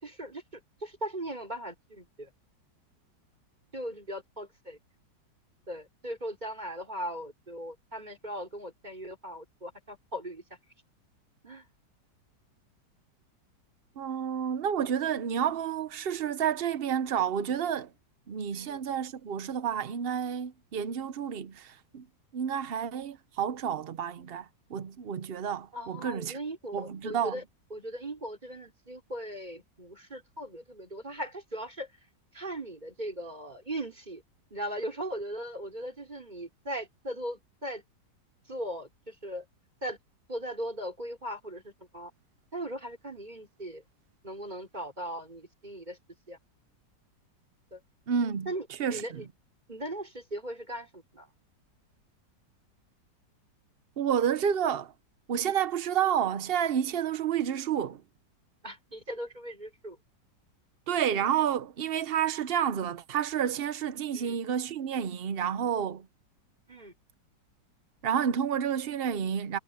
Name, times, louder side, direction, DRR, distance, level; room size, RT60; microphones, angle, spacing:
voice 1, 0.0-2.3 3.7-4.8 5.7-10.4 11.4-11.7 18.5-18.8 25.7-27.4 27.7-31.9 32.3-34.2 34.5-37.8 38.5-39.5 39.8-40.0 40.3-42.1 42.5-43.8 44.2-46.0 46.3-46.4 47.7-47.8 48.5-49.3 49.7-51.3 58.6-60.0 64.1-64.4 66.7-66.9, right 1 dB, 25° right, 5.5 m, -38 dB
voice 2, 14.0-17.9 18.3-22.0 22.3-26.4 26.7-27.4 48.1-48.5 48.8-49.2 54.0-54.9 55.3-58.0 60.9-66.0 68.0-69.6, right 8 dB, 65° right, 0.6 m, -30 dB
omnidirectional pair, 2.0 m